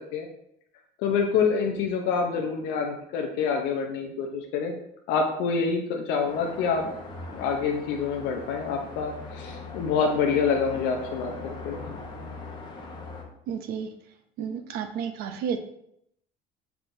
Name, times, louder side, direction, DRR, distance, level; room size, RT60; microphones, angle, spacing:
voice 1, 1.0-4.7 5.1-6.9 7.3-11.8, left 5 dB, 70° left, 1 dB, 0.6 m, -27 dB
sound 1, 6.2-13.2, left 3 dB, 25° left, 0.8 m, -40 dB
voice 2, 13.5-13.9 14.4-15.6, right 7 dB, 55° right, 8 dB, 0.5 m, -31 dB
5.9 x 3.4 x 2.6 m, 0.75 s
cardioid pair, 160°, 19 cm